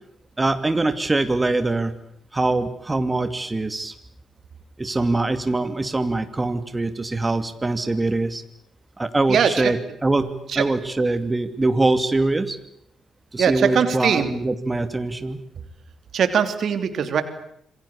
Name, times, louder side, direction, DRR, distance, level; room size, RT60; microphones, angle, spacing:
voice 1, 0.4-1.9 2.3-3.9 4.8-8.4 9.0-9.8 10.0-12.6 13.3-15.4, right 2 dB, 25° right, 9 dB, 2.6 m, -23 dB
voice 2, 9.3-9.7 10.5-10.7 13.4-14.3 16.1-17.2, right 7 dB, 60° right, 10 dB, 3.1 m, -21 dB
27.0 x 22.0 x 8.5 m, 0.72 s
hypercardioid pair, 40°, 0 cm